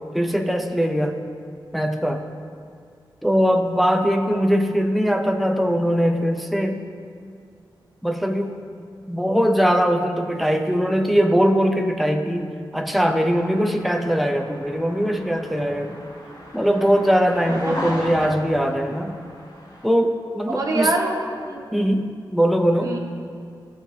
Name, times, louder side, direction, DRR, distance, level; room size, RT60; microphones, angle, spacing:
voice 1, 0.1-1.2 1.7-2.2 3.2-6.9 8.0-8.6 9.1-12.5 12.7-16.0 16.5-19.2 19.8-20.9 21.7-23.0, equal, ahead, 4 dB, 0.5 m, -21 dB
sound 1, 12.8-19.9, equal, 55° left, 1.8 m, -37 dB
voice 2, 20.5-21.7 22.8-23.0, right 2 dB, 45° right, 0 dB, 1.1 m, -25 dB
16.0 x 6.5 x 2.7 m, 2.2 s
wide cardioid pair, 170°, 8 cm